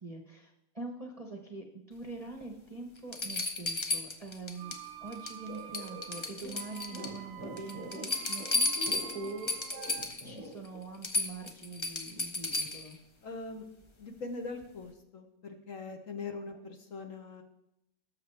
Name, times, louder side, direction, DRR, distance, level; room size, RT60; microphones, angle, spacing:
voice 1, 0.0-4.7 5.0-9.5 10.2-13.0 16.3-16.6, right 3 dB, 25° right, 2 dB, 0.8 m, -44 dB
sound 1, 2.4-2.5 3.1-4.8 5.1-5.5 5.7-7.2 7.6-10.3 10.6-10.7 11.0-12.9 14.6-14.7, left 2 dB, 35° left, 0.4 m, -33 dB
sound 2, 4.5-10.1, right 10 dB, 65° right, 1.0 m, -48 dB
sound 3, 5.5-10.8, equal, 70° left, 5.0 m, -45 dB
voice 2, 13.2-13.7 14.0-17.4, left 3 dB, 55° left, 5 dB, 1.2 m, -42 dB
18.0 x 6.8 x 3.3 m, 0.87 s
omnidirectional pair, 1.9 m